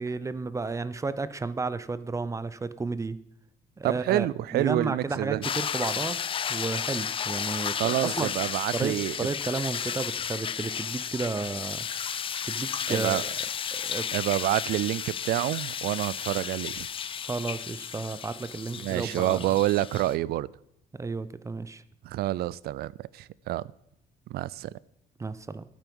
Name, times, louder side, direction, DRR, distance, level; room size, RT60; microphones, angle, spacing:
voice 1, 0.0-3.2 3.8-4.3 4.5-6.2 6.5-8.3 8.7-11.9 12.4-13.3 13.7-14.1 17.2-19.4 20.9-21.8 25.2-25.6, right 3 dB, 20° right, 0.7 m, -32 dB
voice 2, 3.8-5.4 7.8-9.3 12.9-13.2 14.1-16.9 18.8-20.5 22.0-23.7 24.3-24.7, right 15 dB, 70° right, 0.4 m, -28 dB
sound 1, 5.4-20.1, left 8 dB, 30° left, 0.4 m, -33 dB
11.5 x 9.4 x 5.4 m
cardioid pair, 110°, 17 cm